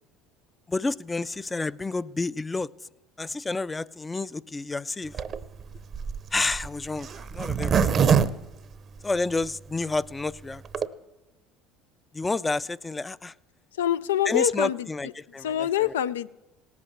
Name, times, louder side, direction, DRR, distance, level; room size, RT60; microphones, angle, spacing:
voice 1, 0.7-2.7 3.2-5.1 6.3-7.8 9.0-10.6 12.1-13.3 14.3-15.9, left 3 dB, 20° left, 18 dB, 0.4 m, -30 dB
Zipper (clothing), 5.1-9.4 9.9-10.0 10.2-10.3 10.5-10.9, right 7 dB, 45° right, 0.7 m, -25 dB
voice 2, 13.8-14.9 15.4-16.3, left 11 dB, 90° left, 15 dB, 0.4 m, -25 dB
17.5 x 8.3 x 7.2 m, 1.0 s
hypercardioid pair, 80°, 0 cm